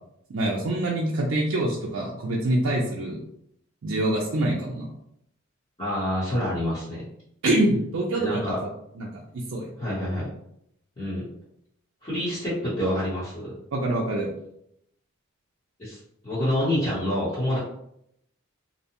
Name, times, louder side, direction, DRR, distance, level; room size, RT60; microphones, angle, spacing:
voice 1, 0.3-3.2 3.8-4.9 7.4-8.5 9.0-9.2 9.5-9.7 13.7-14.3, right 1 dB, 65° right, -3 dB, 0.4 m, -25 dB
voice 2, 5.8-7.0 8.2-8.6 9.8-10.3 11.0-11.3 12.0-13.5 15.8-16.0 16.2-17.6, left 1 dB, 25° left, -11 dB, 0.9 m, -27 dB
2.7 x 2.1 x 2.8 m, 0.74 s
head